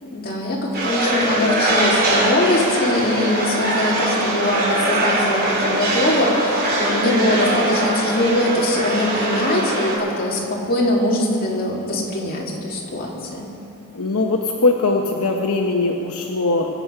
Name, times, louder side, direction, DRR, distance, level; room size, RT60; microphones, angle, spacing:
voice 1, 0.0-13.5, left 1 dB, 45° left, -3 dB, 2.6 m, -22 dB
sound 1, 0.7-10.0, right 1 dB, 45° right, 3.2 m, -21 dB
voice 2, 13.9-16.7, left 3 dB, 75° left, 1 dB, 0.9 m, -20 dB
24.0 x 8.1 x 5.7 m, 2.8 s
head